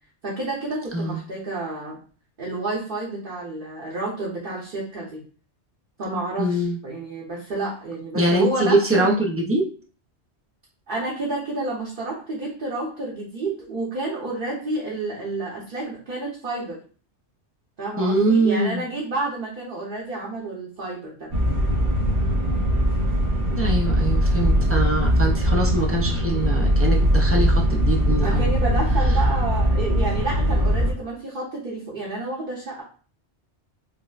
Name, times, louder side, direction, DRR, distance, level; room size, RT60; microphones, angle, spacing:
voice 1, 0.2-2.0 2.4-5.2 6.0-9.1 10.9-16.8 17.8-21.3 28.2-32.8, right 2 dB, 50° right, -4 dB, 1.0 m, -30 dB
voice 2, 0.9-1.2 6.4-6.8 8.1-9.6 18.0-18.9 23.6-28.5, right 1 dB, 20° right, -2 dB, 0.3 m, -23 dB
sound 1, 21.3-30.9, equal, 85° right, 1.2 m, -20 dB
5.0 x 2.1 x 2.4 m, 0.40 s
omnidirectional pair, 1.2 m